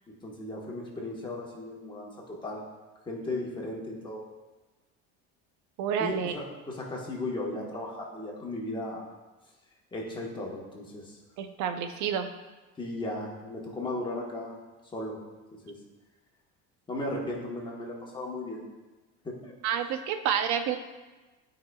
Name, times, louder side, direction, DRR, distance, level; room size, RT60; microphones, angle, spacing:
voice 1, 0.2-2.6 3.1-4.2 6.0-9.1 9.9-11.2 12.8-14.6 14.9-15.2 15.6-15.8 16.9-18.6 19.2-19.5, left 2 dB, 15° left, -3 dB, 1.2 m, -36 dB
voice 2, 5.8-6.4 11.4-12.3 19.6-20.8, right 8 dB, 60° right, 8 dB, 0.7 m, -29 dB
12.5 x 5.0 x 2.3 m, 1.2 s
cardioid pair, 160°, 32 cm